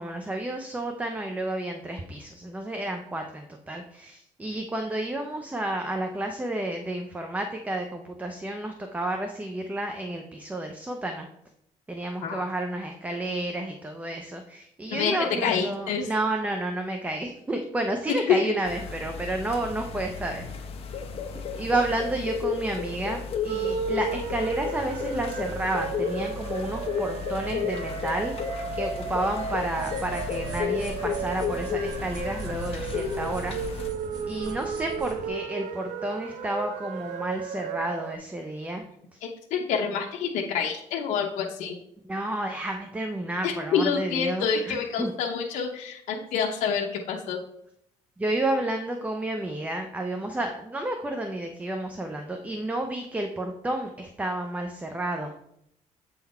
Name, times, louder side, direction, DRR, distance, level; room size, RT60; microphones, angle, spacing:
voice 1, 0.0-11.3 11.9-20.5 21.6-28.3 28.7-33.8 34.3-38.8 39.1-39.2 42.1-45.1 48.2-55.3, right 1 dB, 10° right, 4 dB, 0.6 m, -31 dB
voice 2, 15.4-16.1 18.3-18.5 39.5-41.8 43.4-47.4, left 6 dB, 80° left, 0 dB, 0.8 m, -27 dB
sound 1, 18.6-33.9, left 6 dB, 50° left, 0.9 m, -33 dB
sound 2, 23.5-38.2, right 7 dB, 80° right, 0.7 m, -35 dB
sound 3, 29.8-35.3, right 2 dB, 30° right, 1.0 m, -41 dB
8.2 x 4.0 x 4.3 m, 0.75 s
cardioid pair, 135°, 13 cm